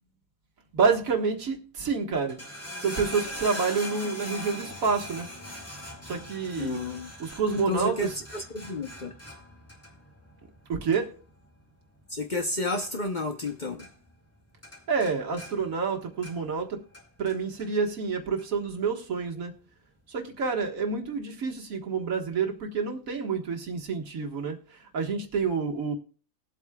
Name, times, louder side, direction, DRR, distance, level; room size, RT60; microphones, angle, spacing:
voice 1, 0.7-2.4 2.8-5.3 6.0-6.8 7.2-8.2 10.7-11.1 14.9-16.8 17.2-19.5 20.1-25.9, right 5 dB, 70° right, 1.9 m, -28 dB
sound 1, 2.2-13.5 13.8-14.4 14.6-16.6 16.9-17.7 18.4-18.5, left 1 dB, 10° left, 2.0 m, -41 dB
voice 2, 6.6-7.1 7.7-9.1 12.1-13.9 25.6-25.8, left 2 dB, 40° left, 0.8 m, -31 dB
20.5 x 8.3 x 2.3 m
omnidirectional pair, 1.5 m